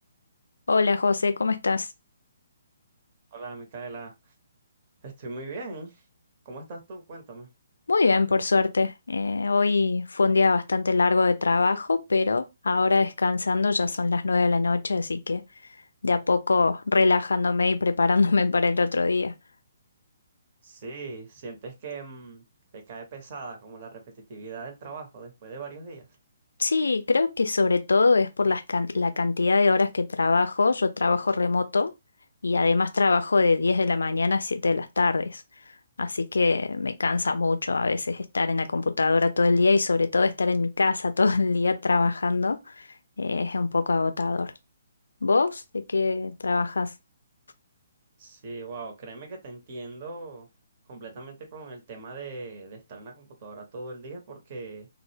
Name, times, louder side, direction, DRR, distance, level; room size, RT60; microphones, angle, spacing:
voice 1, 0.7-1.9 7.9-15.4 16.0-19.3 26.6-31.9 32.4-35.4 36.0-42.9 43.2-44.5 45.2-46.9, left 3 dB, 70° left, 0.4 m, -23 dB
voice 2, 3.3-4.3 5.0-6.0 6.4-7.5 20.6-22.4 22.7-24.0 24.3-26.1 48.2-50.5 50.9-54.9, right 3 dB, 40° right, 0.7 m, -40 dB
2.1 x 2.0 x 3.2 m
figure-of-eight pair, 130°, 0 cm